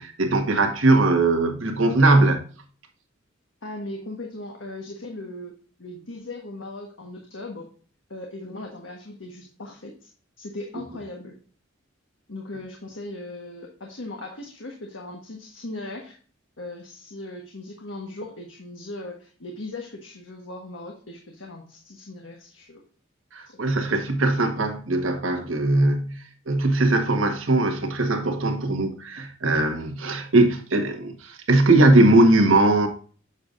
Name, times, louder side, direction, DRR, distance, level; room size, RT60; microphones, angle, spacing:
voice 1, 0.0-2.4 23.3-32.9, right 2 dB, 80° right, 1.5 m, -20 dB
voice 2, 3.6-7.7 8.1-10.1 10.4-11.3 12.3-16.2 16.6-22.8 23.4-23.6, left 2 dB, 70° left, 1.4 m, -38 dB
8.1 x 6.7 x 2.6 m
head